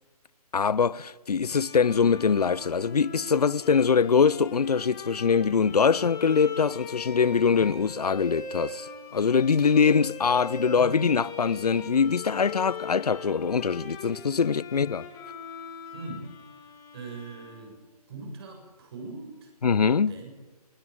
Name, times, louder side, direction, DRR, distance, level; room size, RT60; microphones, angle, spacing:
voice 1, 0.5-15.1 19.6-20.1, left 6 dB, 75° left, 0.7 m, -23 dB
Bowed string instrument, 1.5-18.0, left 4 dB, 15° left, 2.8 m, -41 dB
voice 2, 15.9-16.3 16.9-17.8 18.1-19.5 20.1-20.3, right 3 dB, 40° right, 7.5 m, -41 dB
20.5 x 18.0 x 8.7 m
figure-of-eight pair, 150°, 20 cm